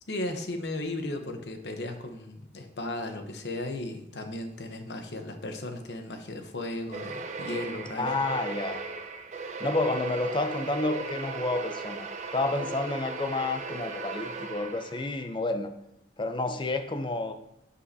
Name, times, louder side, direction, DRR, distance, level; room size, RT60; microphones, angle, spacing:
voice 1, 0.1-8.2, left 1 dB, 75° left, 6 dB, 0.9 m, -35 dB
sound 1, 6.9-15.2, right 4 dB, 40° right, 0.5 m, -37 dB
voice 2, 8.0-8.8 9.6-15.7 16.2-17.3, left 2 dB, 30° left, 8 dB, 0.5 m, -30 dB
11.0 x 5.5 x 2.7 m, 0.81 s
head